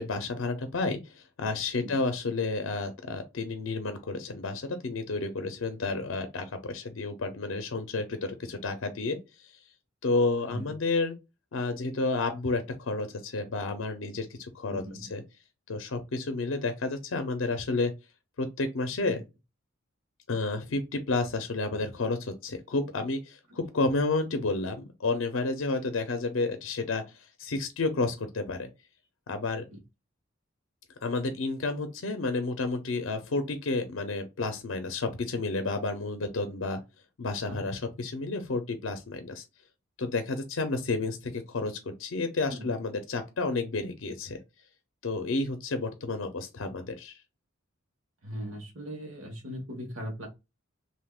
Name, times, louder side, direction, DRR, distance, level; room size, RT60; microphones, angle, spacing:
voice 1, 0.0-9.5 10.0-11.2 11.5-15.2 15.7-17.9 18.4-19.2 20.3-28.7 29.3-29.6 31.0-36.8 37.2-39.4 40.0-44.4 45.0-47.2, left 3 dB, 65° left, 0.5 m, -31 dB
voice 2, 14.7-15.1 19.1-19.2 29.7-29.8 37.5-37.6 42.5-42.7 48.2-50.3, equal, 75° right, 1.3 m, -39 dB
3.5 x 2.6 x 2.3 m
head